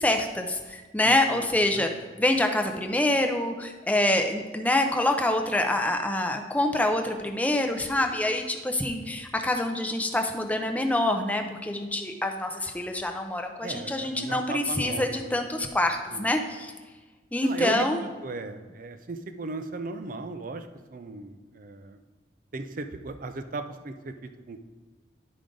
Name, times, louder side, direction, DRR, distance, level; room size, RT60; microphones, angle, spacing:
voice 1, 0.0-1.9 2.2-16.7 17.3-18.0, left 1 dB, 10° left, 4 dB, 0.6 m, -26 dB
voice 2, 1.0-2.1 13.6-15.4 16.1-16.3 17.4-22.0 22.5-24.6, right 3 dB, 50° right, 8 dB, 0.5 m, -37 dB
10.5 x 5.0 x 3.8 m, 1.3 s
head